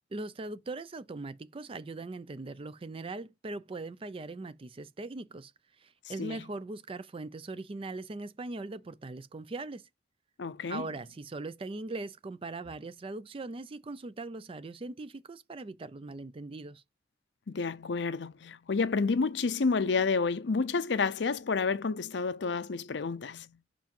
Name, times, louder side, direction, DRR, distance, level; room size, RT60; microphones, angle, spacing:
voice 1, 0.1-5.5 5.8-9.8 10.7-16.8, right 2 dB, 30° right, 0.4 m, -40 dB
voice 2, 10.4-10.9 17.5-23.5, left 4 dB, 70° left, 0.6 m, -30 dB
5.7 x 5.0 x 5.3 m
head